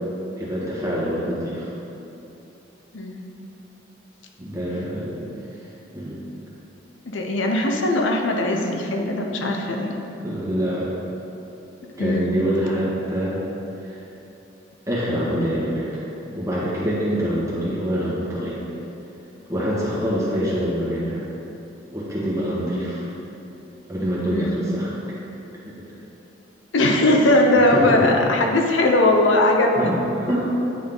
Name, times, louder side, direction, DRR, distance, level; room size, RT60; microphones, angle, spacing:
voice 1, 0.4-1.7 4.4-5.3 5.9-6.2 10.2-10.9 12.0-13.4 13.8-14.0 14.9-16.0 16.3-18.6 19.5-21.2 21.9-23.1 23.9-24.9 25.7-25.9 27.7-28.1 29.8-30.5, equal, 15° right, -8 dB, 1.5 m, -25 dB
voice 2, 2.9-3.2 7.1-10.0 12.0-12.4 24.3-24.6 26.7-29.9, left 1 dB, 85° left, 1 dB, 0.7 m, -20 dB
9.3 x 3.8 x 3.8 m, 2.9 s
head